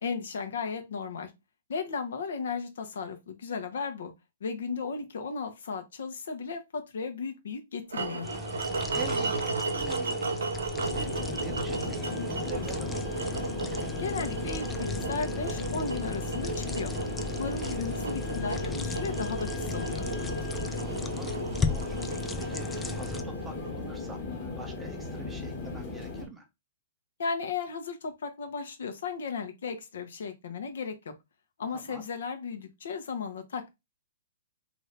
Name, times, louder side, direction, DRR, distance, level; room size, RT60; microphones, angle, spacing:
voice 1, 0.0-1.3 1.7-4.1 4.4-8.3 14.0-16.9 17.4-20.1 27.2-31.1 31.6-33.7, left 5 dB, 70° left, 0.8 m, -35 dB
sound 1, 7.9-24.0, right 3 dB, 85° right, 0.6 m, -35 dB
sound 2, 8.2-23.2, left 5 dB, 10° left, 0.3 m, -38 dB
voice 2, 8.9-13.5 17.6-17.9 20.8-21.3 21.6-26.5 31.7-32.1, right 3 dB, 10° right, 0.7 m, -46 dB
sound 3, 10.8-26.3, left 3 dB, 35° left, 1.1 m, -36 dB
2.7 x 2.6 x 3.2 m
hypercardioid pair, 140°, 0 cm